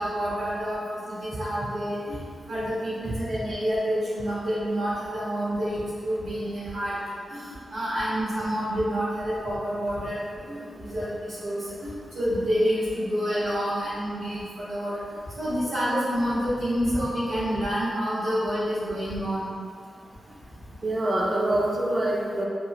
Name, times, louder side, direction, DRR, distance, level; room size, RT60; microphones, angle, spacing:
voice 1, 0.0-2.2 2.5-15.0 15.4-19.5, equal, 90° right, -12 dB, 1.2 m, -28 dB
voice 2, 20.8-22.4, right 1 dB, 40° right, -1 dB, 0.4 m, -25 dB
2.8 x 2.0 x 2.8 m, 2.2 s
cardioid pair, 50°, 0 cm